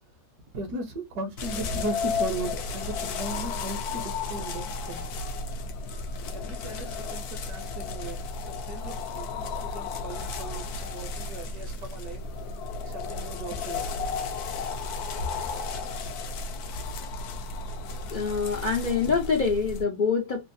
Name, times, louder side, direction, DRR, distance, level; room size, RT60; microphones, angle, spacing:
voice 1, 0.5-5.1 6.3-8.2 8.5-12.2 12.8-13.9, right 2 dB, 60° right, 1.4 m, -37 dB
sound 1, 1.4-19.8, left 4 dB, 70° left, 1.0 m, -33 dB
voice 2, 18.1-20.5, left 5 dB, 50° left, 0.5 m, -25 dB
3.5 x 2.4 x 2.6 m
omnidirectional pair, 1.9 m